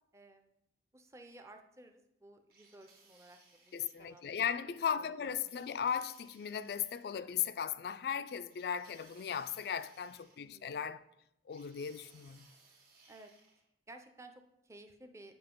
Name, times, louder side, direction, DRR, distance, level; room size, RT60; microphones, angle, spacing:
voice 1, 0.1-0.5 0.9-5.6 10.4-10.8 13.1-13.3 13.9-15.3, right 2 dB, 15° right, 0.5 m, -56 dB
sound 1, 2.5-4.2 5.5-7.1 8.5-10.8 11.5-13.6, right 4 dB, 55° right, 1.6 m, -64 dB
voice 2, 3.7-11.0 11.5-12.5, left 8 dB, 60° left, 0.3 m, -37 dB
7.8 x 5.5 x 3.7 m
head